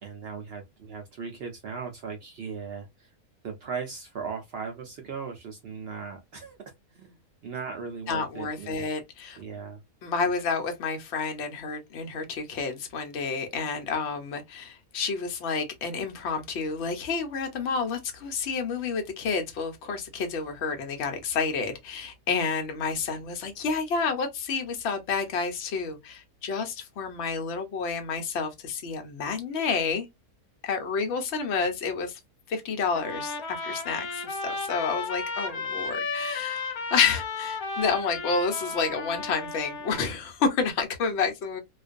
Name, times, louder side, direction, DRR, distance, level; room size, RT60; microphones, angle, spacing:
voice 1, 0.0-3.1 3.4-6.6 6.9-8.9 9.4-9.8, right 5 dB, 65° right, 0.6 m, -38 dB
voice 2, 8.1-9.4 10.0-30.1 30.6-32.2 32.5-41.6, left 5 dB, 60° left, 0.8 m, -29 dB
Trumpet, 32.9-40.1, left 4 dB, 80° left, 1.2 m, -34 dB
2.5 x 2.2 x 2.4 m
omnidirectional pair, 1.5 m